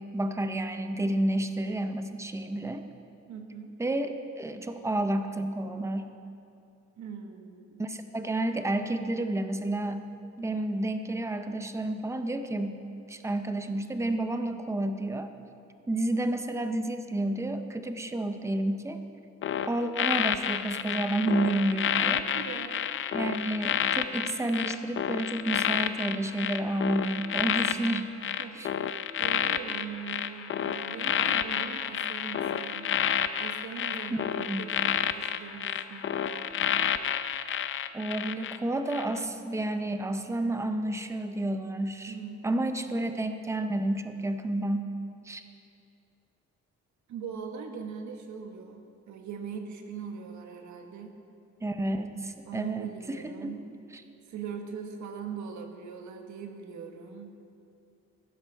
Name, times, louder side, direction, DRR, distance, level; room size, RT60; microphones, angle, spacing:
voice 1, 0.0-2.8 3.8-6.1 7.8-10.0 10.4-12.8 13.1-15.3 15.9-19.0 19.6-22.3 23.1-28.1 28.5-28.7 34.1-34.2 34.5-34.6 37.9-42.1 42.4-44.9 45.3-45.4 51.6-53.6 53.9-54.0, right 1 dB, 10° right, 7 dB, 0.5 m, -30 dB
voice 2, 3.3-3.7 7.0-7.8 22.1-22.9 28.4-28.7 29.2-32.9 33.4-36.4 42.1-42.8 47.1-51.1 52.5-53.6 54.3-57.3, right 6 dB, 75° right, 4 dB, 1.4 m, -41 dB
sound 1, 19.4-38.6 38.9-39.2, left 9 dB, 45° left, 0.5 m, -30 dB
15.0 x 12.0 x 4.5 m, 2.6 s
wide cardioid pair, 170°, 29 cm